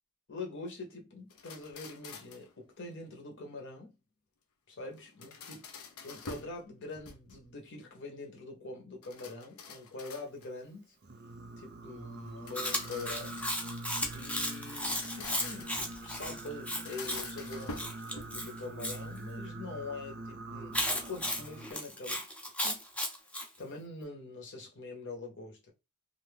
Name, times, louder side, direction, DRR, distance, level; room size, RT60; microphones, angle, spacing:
voice 1, 0.3-4.0 4.7-5.6 6.0-10.9 11.6-13.8 14.1-22.2 22.6-22.8 23.6-25.7, left 3 dB, 60° left, 1.1 m, -44 dB
sound 1, 1.3-2.5 4.9-6.6 6.9-7.5 9.0-10.6 12.2-14.3 14.8-15.9 16.7-18.5, left 3 dB, 80° left, 0.6 m, -47 dB
Singing, 11.0-21.7, right 2 dB, 50° right, 0.6 m, -45 dB
Chewing mastication, 12.5-19.0 20.7-23.5, left 1 dB, 5° left, 0.5 m, -35 dB
2.6 x 2.5 x 3.4 m
head